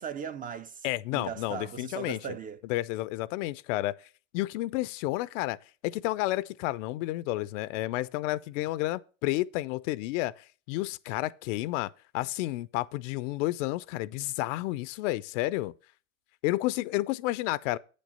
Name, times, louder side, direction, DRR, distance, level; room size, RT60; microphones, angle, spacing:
voice 1, 0.0-2.6, right 7 dB, 25° right, 0.4 m, -38 dB
voice 2, 0.8-2.2 2.7-3.9 4.3-5.6 5.8-10.3 10.7-15.7 16.4-17.8, left 17 dB, 75° left, 0.5 m, -31 dB
8.6 x 5.2 x 5.3 m
supercardioid pair, 115°, 38 cm